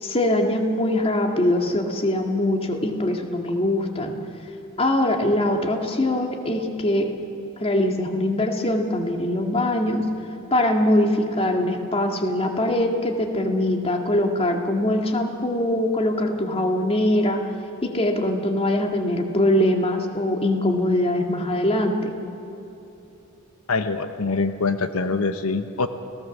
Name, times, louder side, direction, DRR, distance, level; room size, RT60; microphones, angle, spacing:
voice 1, 0.0-4.1 4.8-7.1 7.6-10.0 10.5-17.4 17.8-22.1, left 1 dB, 25° left, 3 dB, 2.1 m, -22 dB
voice 2, 23.7-25.9, left 4 dB, 85° left, 9 dB, 1.0 m, -24 dB
29.5 x 18.0 x 7.3 m, 2.9 s
head